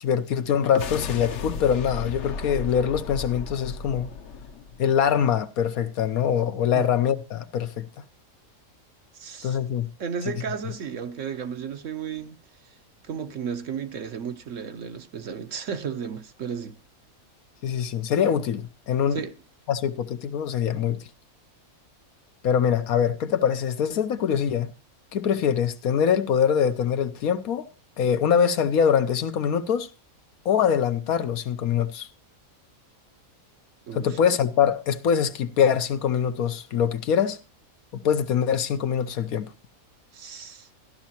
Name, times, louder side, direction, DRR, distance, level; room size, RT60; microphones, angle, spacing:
voice 1, 0.0-4.1 4.8-8.0 9.4-9.9 17.6-19.2 19.7-21.0 22.4-24.7 25.1-27.7 28.0-29.9 30.4-32.1 33.9-37.4 37.9-39.5, left 8 dB, 80° left, 1.3 m, -23 dB
sound 1, 0.6-5.1, left 5 dB, 60° left, 1.0 m, -34 dB
voice 2, 9.1-9.6 10.0-12.4 13.0-16.8 19.1-19.3 33.9-34.2 40.1-40.7, right 7 dB, 60° right, 1.2 m, -34 dB
14.5 x 11.5 x 2.8 m
omnidirectional pair, 1.5 m